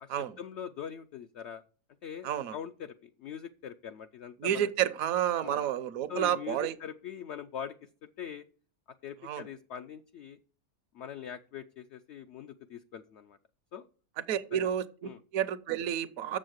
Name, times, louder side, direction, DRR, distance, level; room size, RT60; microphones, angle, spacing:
voice 1, 0.0-1.6 2.0-4.7 5.4-5.7 6.1-8.4 9.0-10.4 10.9-13.4 13.7-13.9 14.5-14.7 15.0-15.2, left 8 dB, 65° left, 0.7 m, -42 dB
voice 2, 2.2-2.5 4.4-6.8 9.2-9.5 14.3-14.8 15.3-16.4, right 10 dB, 65° right, 1.1 m, -30 dB
7.0 x 6.5 x 7.8 m
omnidirectional pair, 1.7 m